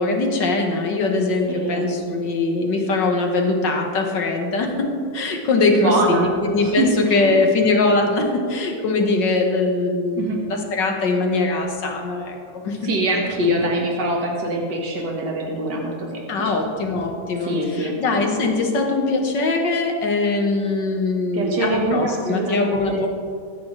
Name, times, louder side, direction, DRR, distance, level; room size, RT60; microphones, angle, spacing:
voice 1, 0.0-12.9 16.3-23.1, left 3 dB, 85° left, 2 dB, 2.2 m, -21 dB
voice 2, 1.5-1.9 5.8-6.3 6.6-7.5 10.2-10.4 12.8-16.5 17.4-18.0 21.3-23.1, right 1 dB, 70° right, -1 dB, 2.3 m, -24 dB
21.5 x 9.2 x 3.3 m, 2.2 s
omnidirectional pair, 1.9 m